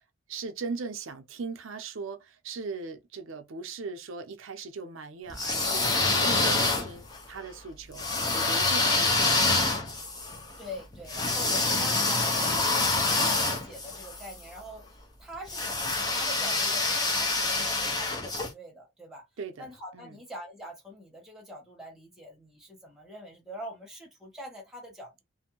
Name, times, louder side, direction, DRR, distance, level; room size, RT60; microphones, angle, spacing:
voice 1, 0.3-8.0 8.3-9.6 19.4-20.2, right 4 dB, 70° right, 0.5 m, -39 dB
sound 1, 5.3-7.2 8.0-14.3 15.5-18.5, left 3 dB, 20° left, 0.5 m, -26 dB
voice 2, 10.6-19.3 19.6-25.2, equal, ahead, 1.0 m, -44 dB
2.5 x 2.1 x 2.9 m
head